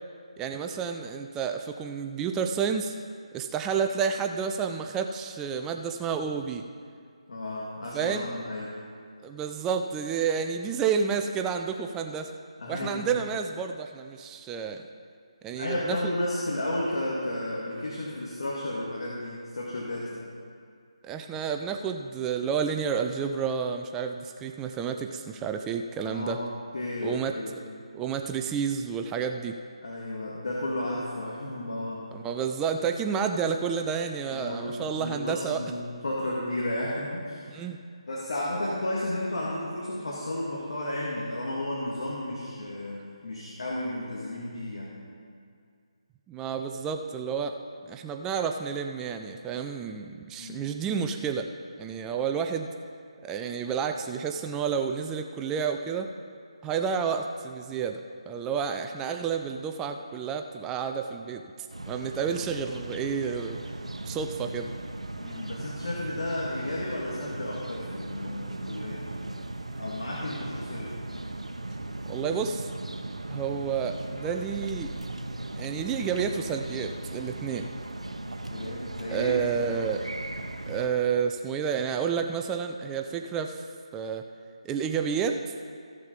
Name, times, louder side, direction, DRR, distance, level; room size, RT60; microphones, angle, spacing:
voice 1, 0.4-2.9 3.3-6.7 7.9-8.3 9.2-12.3 12.7-14.8 15.4-16.0 21.0-26.4 27.0-27.3 27.9-29.6 32.1-35.6 37.5-37.8 46.3-47.6 47.8-51.5 51.8-52.7 53.2-56.1 56.6-58.0 58.3-61.4 61.9-63.6 64.0-64.7 72.1-72.7 73.3-74.9 75.5-77.7 79.1-80.0 80.7-83.6 83.9-84.2 84.6-85.4, right 6 dB, 10° right, 5 dB, 0.4 m, -30 dB
voice 2, 7.3-8.8 12.6-13.0 15.6-20.3 26.1-26.5 26.7-27.6 29.8-32.1 34.3-37.6 38.1-45.0 50.4-50.7 65.2-69.0 69.8-70.9 78.2-79.7, left 1 dB, 65° left, -5 dB, 2.1 m, -33 dB
sound 1, 61.7-80.9, right 2 dB, 90° right, 0.8 m, -37 dB
15.0 x 6.5 x 5.3 m, 2.2 s
figure-of-eight pair, 155°, 3 cm